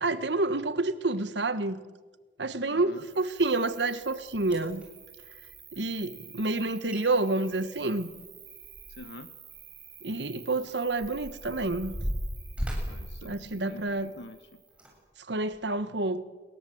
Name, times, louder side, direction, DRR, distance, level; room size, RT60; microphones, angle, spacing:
voice 1, 0.0-1.8 2.4-4.9 5.7-8.1 10.0-11.9 13.2-14.1 15.3-16.2, right 2 dB, 85° right, 13 dB, 1.4 m, -29 dB
voice 2, 2.7-3.0 8.9-9.3 12.9-14.6, left 1 dB, 80° left, 10 dB, 1.1 m, -47 dB
Cricket, 2.9-14.9, right 8 dB, 25° right, 4.9 m, -51 dB
sound 1, 4.4-4.9 6.6-6.7 6.9-7.0 7.4-9.2 9.5-9.6 10.3-14.1 14.7-14.9 15.5-15.6, equal, 5° right, 7.3 m, -36 dB
29.5 x 22.0 x 7.9 m, 1.4 s
head